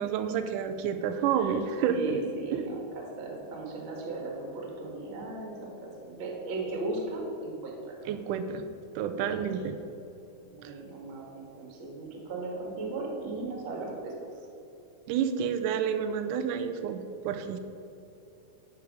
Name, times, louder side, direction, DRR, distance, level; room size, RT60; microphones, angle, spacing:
voice 1, 0.0-2.3 2.5-2.7 8.1-8.6 9.0-9.7 15.1-17.6, right 7 dB, 80° right, 8 dB, 2.1 m, -29 dB
voice 2, 1.4-8.1 8.9-9.3 10.4-14.1, right 2 dB, 40° right, -1 dB, 2.1 m, -37 dB
12.0 x 4.7 x 6.3 m, 2.8 s
omnidirectional pair, 3.8 m